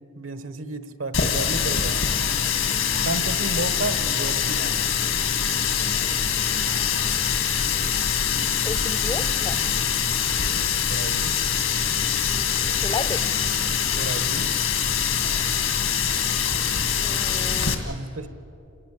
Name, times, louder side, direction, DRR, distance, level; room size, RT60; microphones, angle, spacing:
voice 1, 0.0-2.1 3.0-4.9 10.5-11.4 13.9-14.5 17.8-18.3, right 2 dB, 80° right, 11 dB, 1.4 m, -32 dB
Water tap faucet, 1.1-17.7, left 7 dB, 85° left, 2.2 m, -24 dB
voice 2, 8.6-9.6 12.8-13.2 17.0-17.9, left 3 dB, 20° left, 14 dB, 0.5 m, -32 dB
27.5 x 18.0 x 8.4 m, 3.0 s
head